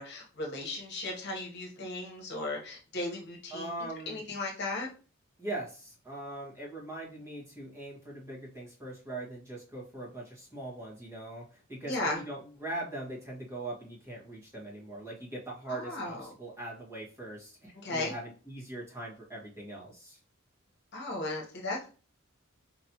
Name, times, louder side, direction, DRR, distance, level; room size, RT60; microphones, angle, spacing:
voice 1, 0.0-3.7 4.1-4.9 11.8-12.2 15.7-16.3 17.8-18.1 20.9-21.9, left 2 dB, 55° left, 0 dB, 1.0 m, -36 dB
voice 2, 3.5-4.2 5.4-20.2, right 2 dB, 15° right, -5 dB, 1.5 m, -41 dB
4.2 x 3.1 x 2.8 m, 0.36 s
head